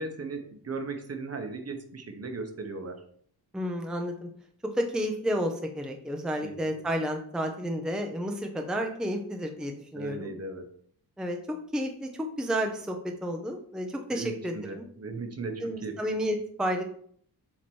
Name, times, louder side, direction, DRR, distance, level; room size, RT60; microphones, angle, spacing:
voice 1, 0.0-3.0 6.4-6.5 9.9-10.6 14.1-15.9, right 3 dB, 40° right, 5 dB, 0.9 m, -37 dB
voice 2, 3.5-4.3 4.7-10.3 11.2-14.9 15.6-16.8, equal, ahead, 3 dB, 0.6 m, -31 dB
7.4 x 2.9 x 4.5 m, 0.62 s
wide cardioid pair, 115°, 38 cm